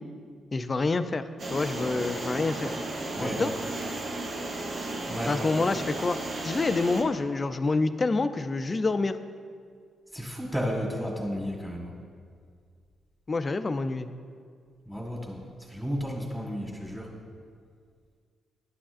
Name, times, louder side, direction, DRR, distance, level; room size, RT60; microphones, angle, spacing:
voice 1, 0.5-1.2 1.5-2.7 3.2-3.5 5.3-6.2 6.4-9.2 13.3-14.1, left 3 dB, 35° left, 11 dB, 0.4 m, -27 dB
sound 1, 1.4-7.0, right 2 dB, 60° right, 1.0 m, -34 dB
voice 2, 5.1-5.5 10.1-11.9 14.9-15.4 15.7-17.1, equal, 5° right, -1 dB, 1.7 m, -32 dB
10.5 x 6.0 x 2.5 m, 2.1 s
supercardioid pair, 55°, 0 cm